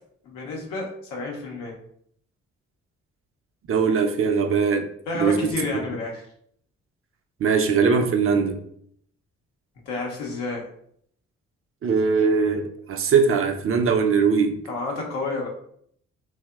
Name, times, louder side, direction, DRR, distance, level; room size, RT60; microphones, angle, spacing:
voice 1, 0.2-1.8 5.1-6.2 9.9-10.7 14.7-15.5, left 3 dB, 90° left, -1 dB, 0.6 m, -30 dB
voice 2, 3.7-4.9 5.1-5.5 7.4-8.6 11.8-14.6, right 5 dB, 40° right, 5 dB, 0.4 m, -21 dB
2.7 x 2.0 x 2.2 m, 0.66 s
hypercardioid pair, 40°, 33 cm